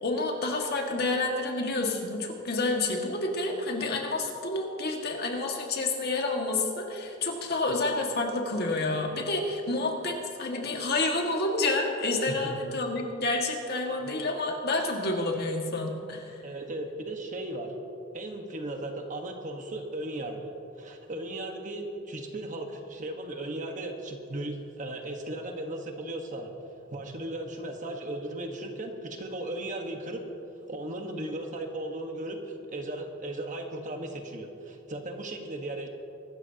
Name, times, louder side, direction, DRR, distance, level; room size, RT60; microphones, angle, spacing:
voice 1, 0.0-16.4, left 2 dB, 55° left, 1 dB, 1.8 m, -29 dB
voice 2, 16.4-17.7 18.1-26.5 26.9-30.2 30.7-35.9, right 1 dB, 40° right, 3 dB, 1.3 m, -36 dB
24.0 x 13.0 x 2.9 m, 2.7 s
head